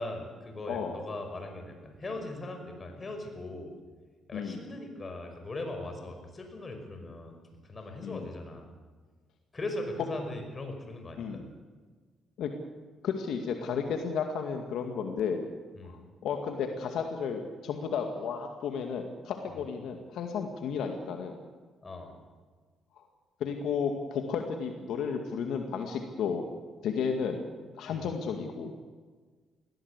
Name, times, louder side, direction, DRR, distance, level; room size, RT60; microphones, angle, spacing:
voice 1, 0.0-3.7 4.3-7.4 7.6-8.7 9.5-11.4 15.7-16.0 19.5-19.6 21.8-22.1 27.9-28.1, left 2 dB, 30° left, 5 dB, 5.6 m, -39 dB
voice 2, 0.7-1.0 4.3-4.6 8.0-8.2 11.2-11.4 12.4-12.5 13.0-15.5 15.8-21.4 23.0-23.1 23.4-26.4 26.8-27.5 27.7-28.7, left 6 dB, 80° left, 4 dB, 2.0 m, -33 dB
21.0 x 16.5 x 8.3 m, 1.4 s
cardioid pair, 90°, 0 cm